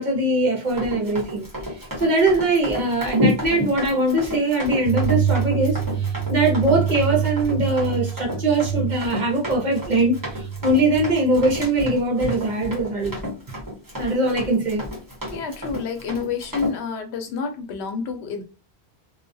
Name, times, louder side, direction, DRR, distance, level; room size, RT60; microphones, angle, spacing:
voice 1, 0.0-1.5 2.0-13.2 14.0-14.9, right 2 dB, 50° right, 0.7 m, -21 dB
Run, 0.7-16.8, left 1 dB, 20° right, 0.9 m, -31 dB
sound 1, 4.8-11.6, right 9 dB, 20° left, 1.0 m, -27 dB
voice 2, 15.3-18.4, left 5 dB, 80° left, 0.8 m, -29 dB
2.3 x 2.2 x 2.5 m
omnidirectional pair, 1.1 m